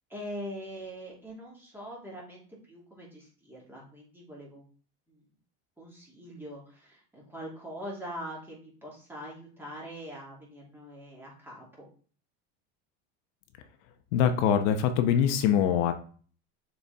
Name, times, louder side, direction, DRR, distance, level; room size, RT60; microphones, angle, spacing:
voice 1, 0.1-4.7 5.1-5.2 5.8-11.9, equal, 5° right, -4 dB, 2.7 m, -43 dB
voice 2, 14.1-15.9, left 9 dB, 75° left, 8 dB, 0.9 m, -23 dB
6.8 x 4.5 x 3.5 m, 0.42 s
supercardioid pair, 140°, 35 cm